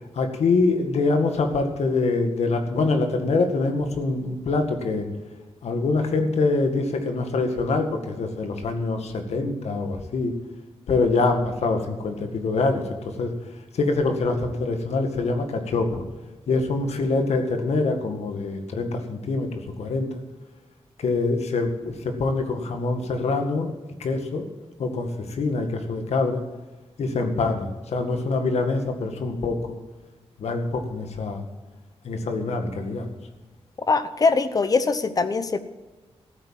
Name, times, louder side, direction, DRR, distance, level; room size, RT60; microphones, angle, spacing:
voice 1, 0.2-5.1 5.6-10.3 10.9-12.8 13.2-13.3 13.7-16.0 16.5-19.5 19.8-20.1 21.0-23.7 24.0-24.5 24.8-26.4 27.0-29.8 30.4-31.4 32.0-33.1, left 3 dB, 90° left, 6 dB, 2.0 m, -24 dB
voice 2, 33.9-35.6, left 4 dB, 35° left, 12 dB, 0.8 m, -22 dB
14.5 x 8.7 x 7.5 m, 1.2 s
wide cardioid pair, 165°, 11 cm